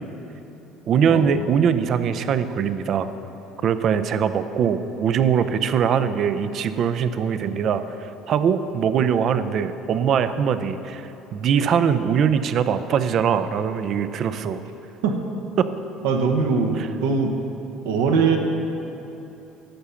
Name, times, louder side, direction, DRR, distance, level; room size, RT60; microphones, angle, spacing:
voice 1, 0.9-3.1 3.6-14.6 15.6-15.7 16.8-16.9, right 7 dB, 55° right, 11 dB, 0.5 m, -22 dB
voice 2, 16.0-17.4 17.8-18.4, right 5 dB, 80° right, 3 dB, 1.1 m, -21 dB
12.0 x 6.9 x 5.7 m, 2.9 s
hypercardioid pair, 75°, 0 cm